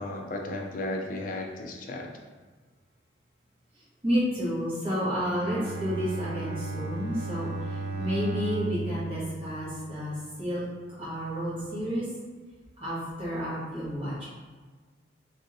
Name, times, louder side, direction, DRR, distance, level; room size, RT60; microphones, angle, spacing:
voice 1, 0.0-2.1, left 2 dB, 45° left, 1 dB, 0.4 m, -34 dB
voice 2, 4.0-10.6 11.0-12.1 12.8-14.2, equal, 30° right, -10 dB, 1.2 m, -31 dB
Bowed string instrument, 5.2-10.5, right 2 dB, 55° right, 0.4 m, -35 dB
3.0 x 2.6 x 2.6 m, 1.4 s
head